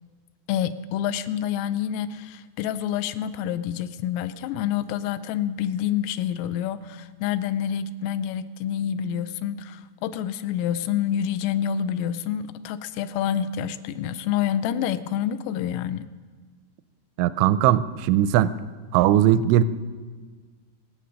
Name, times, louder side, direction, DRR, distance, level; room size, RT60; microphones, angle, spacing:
voice 1, 0.5-16.1, left 9 dB, 85° left, 12 dB, 3.3 m, -27 dB
voice 2, 17.2-18.5 18.9-19.6, right 12 dB, 85° right, 15 dB, 2.8 m, -19 dB
24.5 x 8.4 x 6.4 m, 1.5 s
omnidirectional pair, 5.8 m